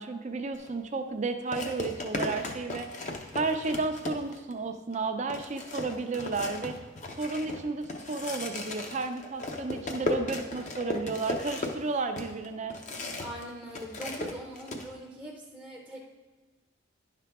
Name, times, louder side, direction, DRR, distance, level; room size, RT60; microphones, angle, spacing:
voice 1, 0.0-2.9 3.3-6.8 7.2-12.8, right 3 dB, 35° right, 7 dB, 0.5 m, -32 dB
sound 1, 0.5-0.7 1.5-4.5 4.9-5.0 5.3-13.4 13.7-14.9, left 2 dB, 35° left, 0.8 m, -36 dB
voice 2, 13.2-16.0, equal, ahead, -2 dB, 0.7 m, -41 dB
10.0 x 5.8 x 3.5 m, 1.3 s
head